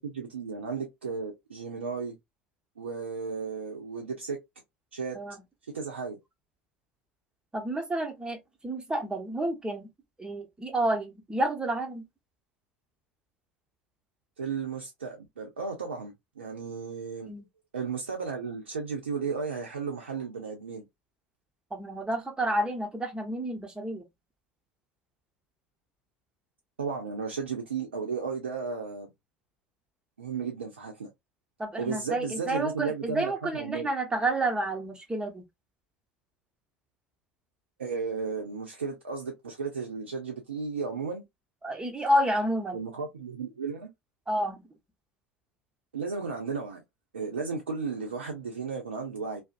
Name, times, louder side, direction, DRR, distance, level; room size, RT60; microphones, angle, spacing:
voice 1, 0.0-2.2 2.8-4.4 4.9-5.2 5.7-6.2 14.4-17.3 17.7-20.8 26.8-29.1 30.2-31.1 31.8-33.9 37.8-41.2 42.7-43.9 45.9-46.8 47.1-49.4, right 5 dB, 85° right, 0.5 m, -34 dB
voice 2, 7.5-8.4 8.6-9.9 10.2-12.0 17.3-17.4 21.7-24.0 31.6-35.4 41.6-42.8 44.3-44.6, right 1 dB, 15° right, 0.9 m, -30 dB
2.5 x 2.0 x 2.4 m
hypercardioid pair, 70°, 6 cm